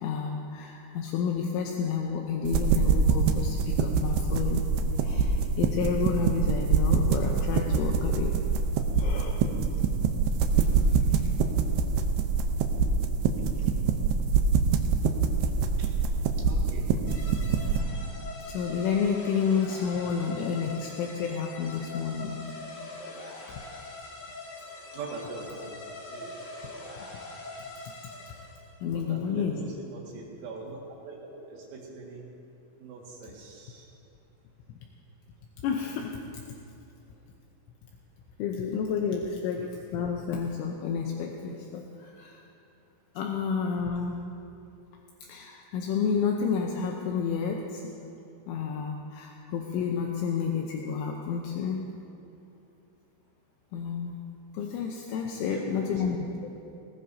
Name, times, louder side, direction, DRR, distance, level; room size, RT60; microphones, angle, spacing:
voice 1, 0.0-4.7 5.0-8.3 9.0-9.4 10.6-11.3 18.5-22.4 28.8-29.6 35.6-36.4 38.4-42.4 43.2-44.2 45.3-48.1 48.5-51.8 53.7-54.2 54.5-56.2, left 6 dB, 80° left, 1 dB, 3.1 m, -30 dB
sound 1, 2.4-17.8, right 5 dB, 90° right, 2.4 m, -25 dB
voice 2, 16.5-16.9 24.9-25.7 26.1-26.3 28.9-32.3 32.8-33.9 55.4-56.3, right 3 dB, 75° right, -3 dB, 4.3 m, -42 dB
sound 2, 17.0-28.7, left 2 dB, 50° left, 2.2 m, -43 dB
19.5 x 18.0 x 2.7 m, 2.8 s
omnidirectional pair, 5.8 m